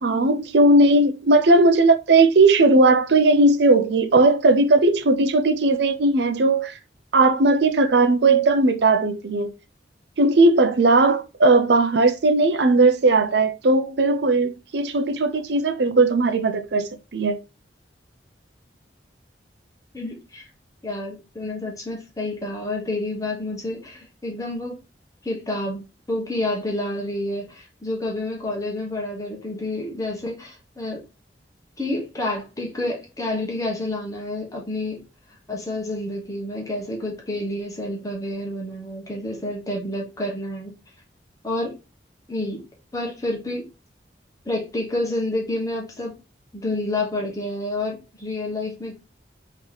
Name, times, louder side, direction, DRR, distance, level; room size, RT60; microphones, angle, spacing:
voice 1, 0.0-6.8 7.1-9.5 10.2-17.4, right 2 dB, 75° right, 0.6 m, -18 dB
voice 2, 19.9-20.5 20.8-24.8 25.2-31.0 31.8-35.0 35.5-40.7 41.4-41.7 42.3-42.6 42.9-43.6 44.4-46.2 46.5-48.9, left 1 dB, 20° left, 1.3 m, -29 dB
3.9 x 3.1 x 3.9 m
head